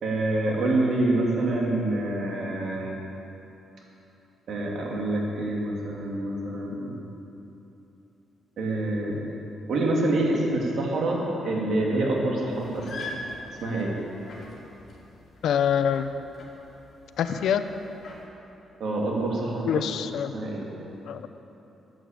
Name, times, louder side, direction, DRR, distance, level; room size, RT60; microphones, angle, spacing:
voice 1, 0.0-2.9 4.5-6.9 8.6-9.2 9.7-13.0 13.6-14.0 18.8-19.8 20.3-20.7, right 2 dB, 65° right, -2 dB, 3.0 m, -26 dB
sound 1, 12.5-18.2, left 2 dB, 50° left, 3.1 m, -43 dB
voice 2, 15.4-16.1 17.2-17.7 19.7-20.3 21.1-21.3, left 8 dB, 80° left, 10 dB, 0.7 m, -25 dB
15.0 x 8.9 x 7.7 m, 3.0 s
cardioid pair, 140°, 0 cm